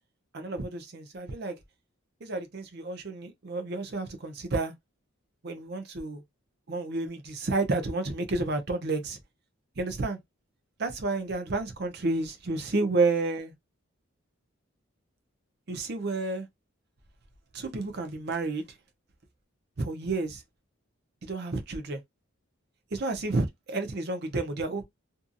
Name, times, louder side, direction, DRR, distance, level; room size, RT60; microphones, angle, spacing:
voice 1, 0.3-1.6 2.2-4.7 5.4-6.2 6.7-9.2 9.8-10.2 10.8-13.5 15.7-16.5 17.5-18.6 19.8-20.4 21.2-22.0 22.9-24.9, right 3 dB, 50° right, 0.6 m, -30 dB
2.7 x 2.4 x 2.5 m
head